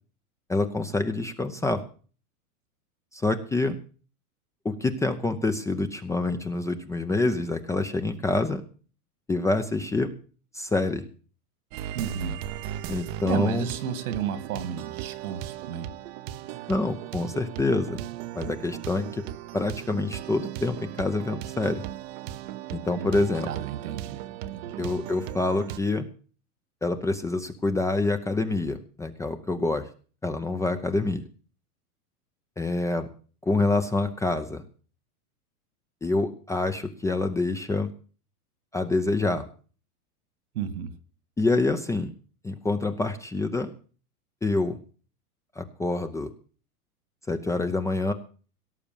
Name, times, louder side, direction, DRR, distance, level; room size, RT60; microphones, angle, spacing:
voice 1, 0.5-1.8 3.1-3.8 4.6-8.6 9.3-10.1 10.5-11.0 12.9-13.7 16.7-18.0 18.3-19.2 19.5-21.8 22.7-23.5 24.8-26.0 26.8-29.9 30.2-31.2 32.6-33.1 33.4-34.6 36.0-37.9 38.7-39.4 41.4-42.1 42.4-43.7 44.4-44.8 45.6-46.3 47.3-48.1, left 2 dB, 5° left, 7 dB, 0.7 m, -26 dB
sound 1, 11.7-25.8, right 13 dB, 40° right, 0.9 m, -37 dB
voice 2, 11.9-12.4 13.2-15.9 23.0-24.2 24.5-24.7 40.5-40.9, right 8 dB, 70° right, 12 dB, 2.4 m, -32 dB
17.5 x 7.0 x 7.1 m, 0.39 s
hypercardioid pair, 135°, 46 cm